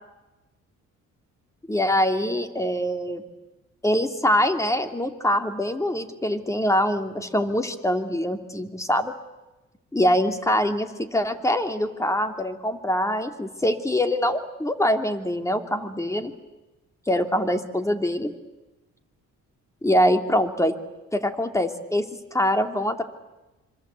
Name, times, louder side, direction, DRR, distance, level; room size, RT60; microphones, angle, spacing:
voice 1, 1.7-3.2 3.8-9.1 9.9-16.3 17.1-18.3 19.8-20.7 21.1-23.0, left 1 dB, 10° left, 6 dB, 2.7 m, -24 dB
26.0 x 26.0 x 8.3 m, 1.1 s
cardioid pair, 90°, 30 cm